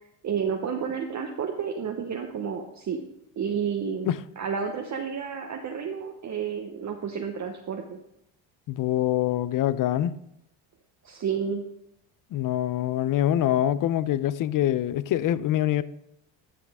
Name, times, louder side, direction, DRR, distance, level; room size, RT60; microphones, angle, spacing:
voice 1, 0.2-3.0 3.4-8.0 11.0-11.6, right 7 dB, 35° right, 0.8 m, -31 dB
voice 2, 8.7-10.1 12.3-15.8, left 12 dB, 45° left, 0.5 m, -24 dB
9.6 x 5.9 x 3.5 m
supercardioid pair, 80°, 47 cm